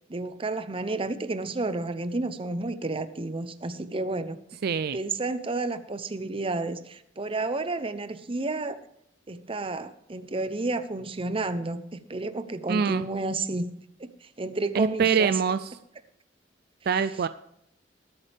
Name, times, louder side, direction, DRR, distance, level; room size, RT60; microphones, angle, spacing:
voice 1, 0.1-4.4 4.9-8.8 9.3-13.7 14.0-15.4, right 2 dB, 30° right, 11 dB, 0.8 m, -31 dB
voice 2, 4.6-5.0 12.7-13.0 14.7-15.7 16.9-17.3, right 6 dB, 60° right, 13 dB, 0.4 m, -24 dB
20.5 x 8.5 x 3.5 m, 0.74 s
head